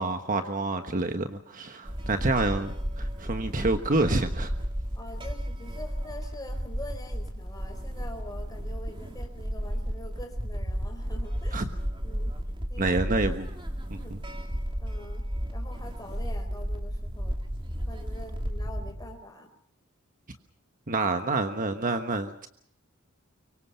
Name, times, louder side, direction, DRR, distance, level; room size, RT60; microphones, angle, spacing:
voice 1, 0.0-4.5 11.5-11.7 12.8-13.5 13.9-14.2 20.9-22.5, right 2 dB, 40° right, 7 dB, 1.3 m, -28 dB
sound 1, 1.8-19.2, equal, 25° right, 2.9 m, -33 dB
voice 2, 4.9-11.7 12.0-12.4 12.7-13.0 13.9-14.1 14.8-17.4 17.9-19.5, left 1 dB, 20° left, 4 dB, 4.5 m, -45 dB
25.0 x 24.0 x 5.7 m, 0.67 s
head